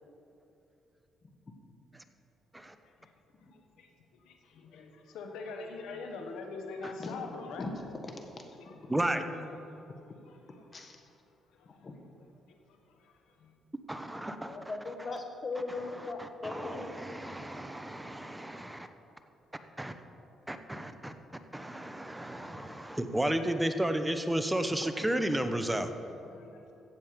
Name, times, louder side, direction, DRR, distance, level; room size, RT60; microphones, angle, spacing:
voice 1, 3.5-7.7 8.6-8.9 9.3-9.8 10.3-10.4 11.5-11.9 12.5-13.5 25.8-26.7, left 4 dB, 85° left, 3 dB, 1.3 m, -45 dB
voice 2, 8.9-9.2 13.9-14.6 16.2-18.9 19.8-19.9 20.5-21.1 21.5-25.9, right 1 dB, 10° right, 8 dB, 0.8 m, -33 dB
voice 3, 11.7-12.0 14.4-17.1 24.8-24.9, left 3 dB, 35° left, 4 dB, 1.6 m, -39 dB
15.0 x 7.5 x 5.1 m, 2.8 s
cardioid pair, 90°, 0 cm